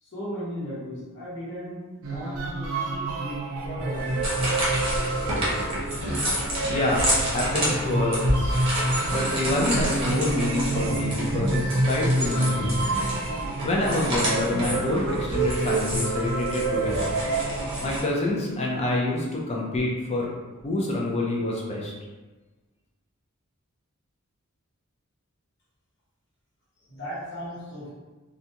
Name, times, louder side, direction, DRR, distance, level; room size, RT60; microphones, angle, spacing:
voice 1, 0.0-4.3 26.9-27.9, equal, 55° left, -8 dB, 1.1 m, -36 dB
sound 1, 2.0-18.1, right 2 dB, 60° right, 0.4 m, -28 dB
sound 2, 3.9-18.0, equal, 25° right, 0.7 m, -29 dB
voice 2, 6.6-7.0 7.3-8.6 9.1-12.9 13.6-17.1 17.8-20.3 20.6-21.9, left 2 dB, 30° left, -2 dB, 0.4 m, -27 dB
2.5 x 2.2 x 2.8 m, 1.2 s
head